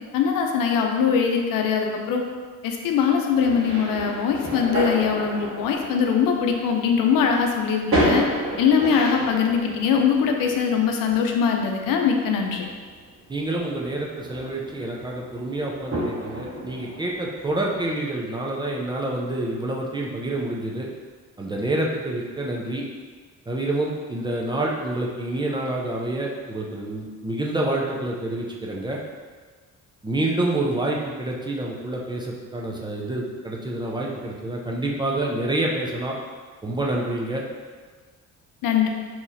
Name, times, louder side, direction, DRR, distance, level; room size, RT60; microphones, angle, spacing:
voice 1, 0.1-2.3 2.6-8.3 8.6-12.7 38.6-38.9, left 6 dB, 90° left, 2 dB, 0.6 m, -22 dB
sound 1, 3.4-18.0, equal, 40° right, 1.2 m, -31 dB
voice 2, 13.3-20.9 21.4-22.8 23.5-29.0 30.0-36.2 36.6-37.4, right 1 dB, 15° right, -3 dB, 0.3 m, -27 dB
2.9 x 2.6 x 3.9 m, 1.5 s
cardioid pair, 135°, 32 cm